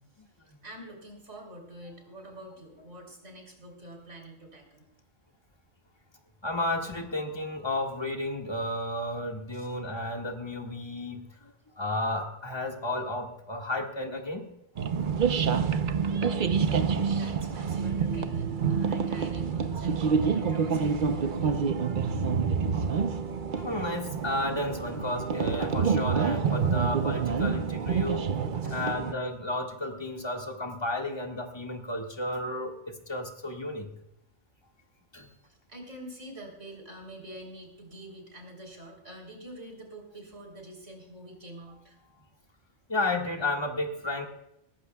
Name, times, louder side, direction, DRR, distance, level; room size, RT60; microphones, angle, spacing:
voice 1, 0.6-4.9 9.5-9.7 16.2-21.8 28.6-28.9 35.4-42.0, right 1 dB, 70° right, 2 dB, 4.0 m, -46 dB
voice 2, 6.4-14.5 16.8-17.1 23.3-28.3 28.7-33.9 35.1-35.3 42.9-44.3, left 1 dB, 20° left, 2 dB, 1.8 m, -32 dB
sound 1, 14.8-29.1, right 6 dB, 50° right, 0.8 m, -27 dB
20.0 x 15.0 x 2.3 m, 0.85 s
omnidirectional pair, 1.3 m